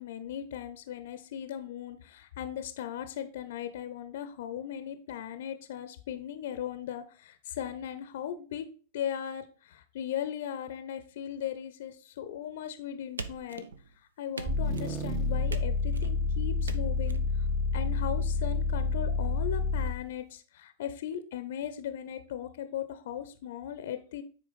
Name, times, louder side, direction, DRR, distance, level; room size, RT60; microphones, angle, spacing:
voice 1, 0.0-8.7 8.9-13.6 14.2-17.2 17.7-24.2, left 9 dB, 55° left, 11 dB, 0.6 m, -38 dB
sound 1, 13.2-14.0 14.4-15.0 15.5-16.1 16.7-17.2, right 4 dB, 75° right, 0.6 m, -42 dB
sound 2, 14.5-20.1, left 3 dB, 35° right, 1.0 m, -29 dB
9.9 x 4.5 x 4.0 m, 0.39 s
figure-of-eight pair, 90°, 0 cm